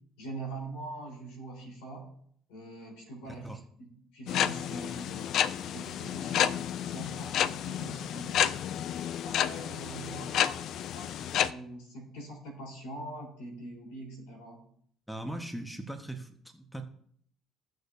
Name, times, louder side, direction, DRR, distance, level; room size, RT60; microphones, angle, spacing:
voice 1, 0.2-2.1 2.5-5.3 5.7-8.6 9.2-14.7, right 2 dB, 85° left, 0 dB, 3.9 m, -43 dB
sound 1, 4.3-11.5, left 10 dB, 65° left, 0.4 m, -30 dB
voice 2, 15.1-16.8, right 1 dB, 5° left, 5 dB, 1.3 m, -39 dB
17.0 x 6.5 x 2.7 m, 0.63 s
supercardioid pair, 75°, 0 cm